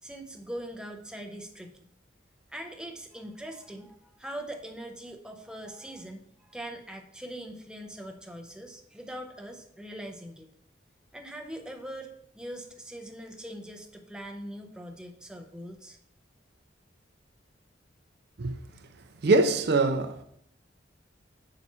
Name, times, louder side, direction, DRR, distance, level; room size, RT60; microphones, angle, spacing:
voice 1, 0.0-1.9 2.5-10.5 11.1-16.0, right 1 dB, 5° right, 0.5 m, -42 dB
voice 2, 19.2-20.2, right 3 dB, 60° right, 0.4 m, -23 dB
5.6 x 4.1 x 4.7 m
head